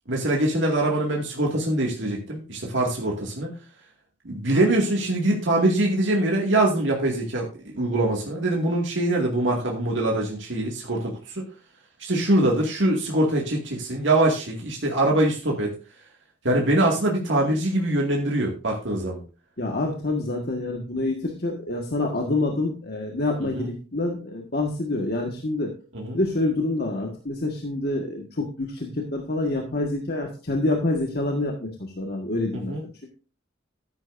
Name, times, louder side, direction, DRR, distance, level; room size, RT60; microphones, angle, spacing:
voice 1, 0.1-3.5 4.2-11.5 12.0-15.7 16.4-19.2 23.4-23.7 25.9-26.2 32.5-32.8, right 1 dB, 75° right, -1 dB, 2.2 m, -23 dB
voice 2, 19.6-25.7 26.1-32.7, left 2 dB, 55° left, 1 dB, 1.6 m, -27 dB
13.0 x 10.5 x 2.6 m, 0.35 s
head